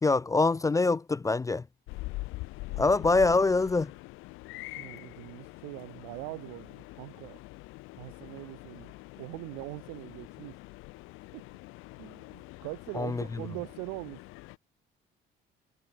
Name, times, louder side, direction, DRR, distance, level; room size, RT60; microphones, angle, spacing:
voice 1, 0.0-1.6 2.8-3.9 13.0-13.2, left 3 dB, 15° left, 0.4 m, -24 dB
sound 1, 1.9-14.6, left 22 dB, 80° left, 1.5 m, -44 dB
voice 2, 2.7-3.1 4.8-7.4 8.0-10.6 11.3-11.4 12.0-14.2, right 35 dB, 90° right, 2.4 m, -42 dB
supercardioid pair, 75°, 21 cm